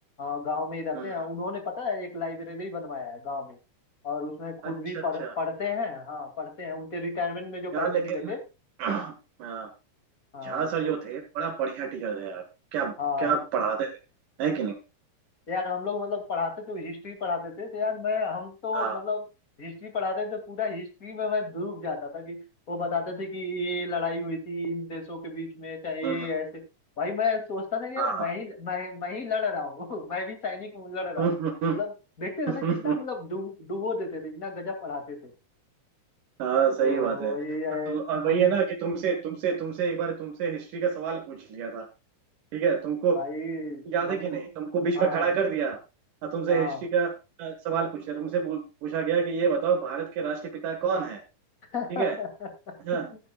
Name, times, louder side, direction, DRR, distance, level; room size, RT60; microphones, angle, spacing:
voice 1, 0.2-3.6 4.0-8.4 10.3-11.0 13.0-13.4 15.5-19.2 19.6-22.4 22.7-26.6 27.0-31.3 31.7-31.9 32.2-35.3 36.8-38.0 38.2-38.5 43.1-44.5 45.0-45.3 46.5-46.8 51.7-53.1, left 3 dB, 30° left, 6 dB, 2.5 m, -32 dB
voice 2, 4.6-5.3 7.7-8.3 8.8-9.7 10.4-12.4 12.7-13.9 14.4-14.8 18.7-19.0 26.0-26.3 28.0-28.3 31.2-31.8 32.5-33.0 36.4-37.4 37.9-41.9 42.5-43.2 43.9-45.8 46.2-47.1 47.4-51.2 51.9-52.2 52.8-53.1, right 6 dB, 90° right, 2 dB, 3.2 m, -28 dB
14.5 x 10.5 x 2.3 m, 0.28 s
omnidirectional pair, 3.6 m